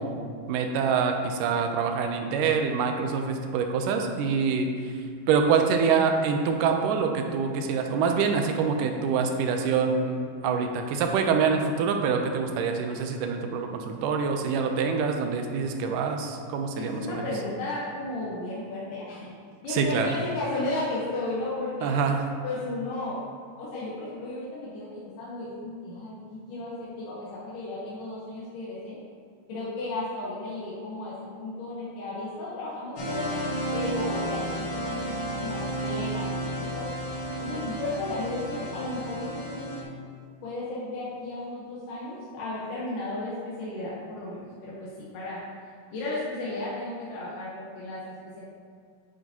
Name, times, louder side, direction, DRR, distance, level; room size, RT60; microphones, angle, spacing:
voice 1, 0.0-4.7 5.3-17.3 19.7-20.1 21.8-22.2, right 5 dB, 80° right, 4 dB, 2.2 m, -25 dB
voice 2, 16.8-19.3 19.6-21.9 22.4-23.2 23.6-29.0 29.5-36.9 37.4-39.7 40.4-44.9 45.1-45.4 45.9-48.0, left 2 dB, 75° left, -8 dB, 2.8 m, -34 dB
sound 1, 33.0-39.8, equal, 55° left, 1.9 m, -32 dB
9.2 x 7.8 x 2.9 m, 2.2 s
omnidirectional pair, 3.9 m